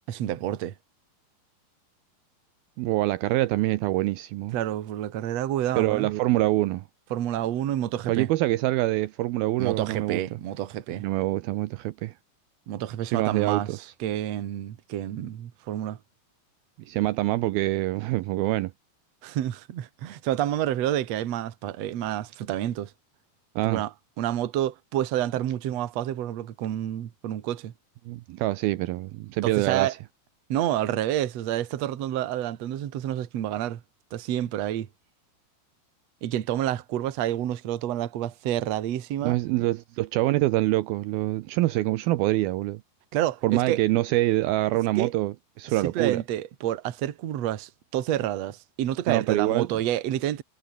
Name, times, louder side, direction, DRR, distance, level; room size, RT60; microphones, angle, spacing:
voice 1, 0.1-0.7 4.5-6.1 7.1-8.3 9.6-11.0 12.7-13.7 14.0-16.0 19.2-22.9 23.6-27.7 29.4-29.9 30.5-33.8 34.1-34.9 36.2-39.4 43.1-43.8 45.0-45.1 45.8-50.4, right 12 dB, 55° right, 2.1 m, -29 dB
voice 2, 2.8-4.6 5.8-6.8 8.1-10.2 11.0-12.1 13.1-13.9 16.9-18.7 23.6-23.8 28.1-30.0 39.2-42.8 43.4-46.2 49.1-49.7, right 17 dB, 75° right, 2.5 m, -25 dB
omnidirectional pair, 4.6 m